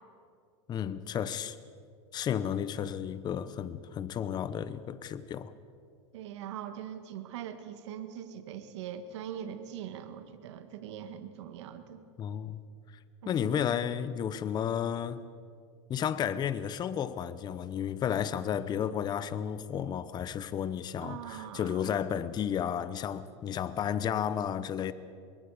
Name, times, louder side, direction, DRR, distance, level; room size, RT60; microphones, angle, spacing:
voice 1, 0.7-1.6 2.1-5.5 12.2-12.6 13.3-15.2 15.9-24.9, left 9 dB, 30° left, 0.8 m, -32 dB
voice 2, 6.1-12.0 13.2-13.7 21.0-21.9, right 9 dB, 75° right, 1.9 m, -42 dB
25.0 x 22.5 x 5.0 m
supercardioid pair, 125°, 15 cm